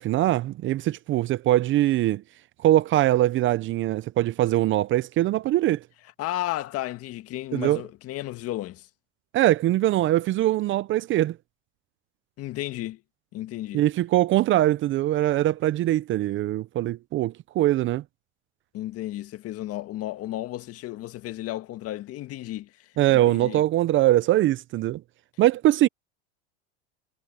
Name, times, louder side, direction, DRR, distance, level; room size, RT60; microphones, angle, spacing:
voice 1, 0.0-2.2 2.6-5.8 7.5-7.8 9.3-11.4 13.7-18.0 23.0-25.0 25.4-25.9, right 14 dB, 35° right, 0.7 m, -22 dB
voice 2, 6.2-8.9 12.4-13.0 13.3-13.8 18.7-23.6, left 15 dB, 45° left, 1.9 m, -33 dB
supercardioid pair, 120°, 34 cm